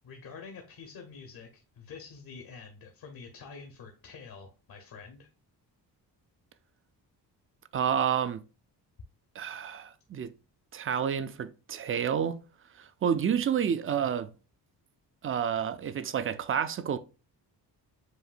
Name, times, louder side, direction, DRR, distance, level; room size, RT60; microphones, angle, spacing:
voice 1, 0.0-5.3, left 5 dB, 60° left, 0.9 m, -47 dB
voice 2, 7.7-8.4 9.4-10.3 10.7-12.4 12.8-14.3 15.2-17.0, right 8 dB, 35° right, 0.4 m, -29 dB
7.8 x 2.7 x 2.5 m
cardioid pair, 95°, 40 cm